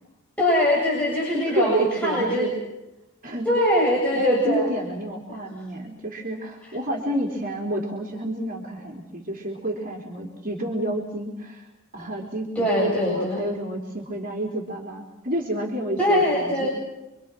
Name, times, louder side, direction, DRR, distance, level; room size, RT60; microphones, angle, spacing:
voice 1, 0.4-2.5 3.5-4.7 12.6-13.4 16.0-16.7, equal, 5° left, -5 dB, 7.6 m, -22 dB
voice 2, 1.3-2.5 3.2-3.5 4.1-11.7 11.9-16.7, right 1 dB, 40° right, 1 dB, 4.1 m, -29 dB
28.5 x 25.0 x 6.3 m, 0.97 s
head